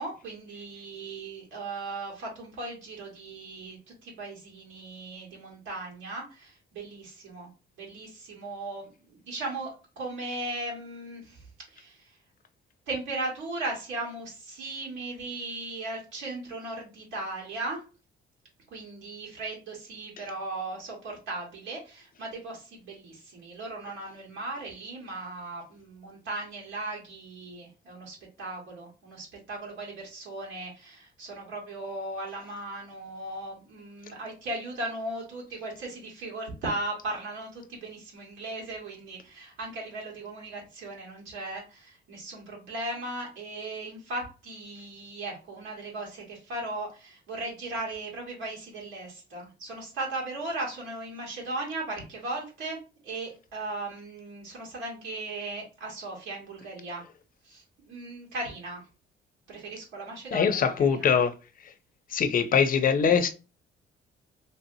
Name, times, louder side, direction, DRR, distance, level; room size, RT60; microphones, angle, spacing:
voice 1, 0.0-7.5 7.8-9.7 10.0-11.4 11.7-12.1 12.9-17.8 18.7-52.8 53.0-57.0 57.4-58.8 59.5-61.1, right 2 dB, 85° right, 1.4 m, -37 dB
voice 2, 60.3-61.3 62.1-63.3, left 7 dB, 45° left, 0.5 m, -23 dB
3.3 x 2.7 x 2.6 m
cardioid pair, 90°, 20 cm